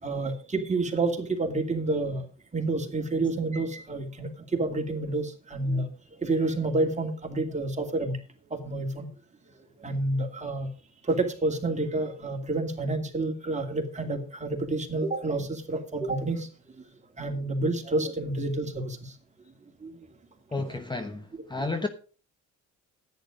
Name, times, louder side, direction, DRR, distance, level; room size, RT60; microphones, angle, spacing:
voice 1, 0.0-2.3 2.5-5.9 6.2-8.2 8.5-9.1 9.8-10.7 11.1-16.5 17.2-19.1 19.8-19.9 20.6-20.8 21.6-21.7, right 2 dB, 25° right, 2.8 m, -29 dB
voice 2, 20.5-21.9, left 3 dB, 15° left, 1.1 m, -32 dB
10.5 x 9.5 x 5.1 m
cardioid pair, 90°, 30 cm